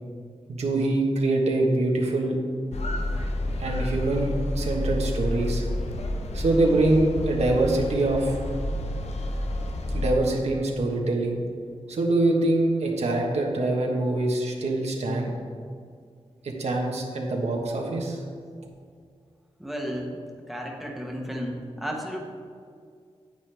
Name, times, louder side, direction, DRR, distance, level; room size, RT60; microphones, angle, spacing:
voice 1, 0.5-2.4 3.6-5.6 6.3-8.4 9.9-11.4 11.9-15.3 16.4-18.2, right 2 dB, 85° right, 0 dB, 1.3 m, -24 dB
sound 1, 2.7-10.1, left 1 dB, 90° left, 0.8 m, -29 dB
voice 2, 19.6-20.2 20.5-22.2, equal, ahead, -1 dB, 1.2 m, -33 dB
9.5 x 8.8 x 3.4 m, 2.1 s
wide cardioid pair, 125°, 11 cm